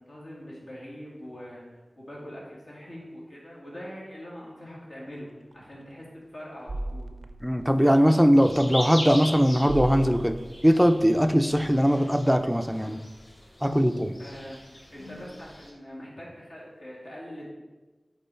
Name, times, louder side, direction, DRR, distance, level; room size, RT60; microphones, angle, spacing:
voice 1, 0.0-7.1 14.2-17.5, equal, 75° left, -5 dB, 1.8 m, -43 dB
sound 1, 5.5-5.6 6.7-8.3 9.1-9.4 9.7-11.9, right 1 dB, 70° right, 0.4 m, -38 dB
voice 2, 7.4-10.3 10.6-13.0 13.6-14.1, equal, ahead, 8 dB, 0.4 m, -20 dB
sound 2, 8.4-15.7, left 1 dB, 55° left, 1.3 m, -40 dB
5.3 x 4.1 x 4.4 m, 1.2 s
wide cardioid pair, 60°, 0 cm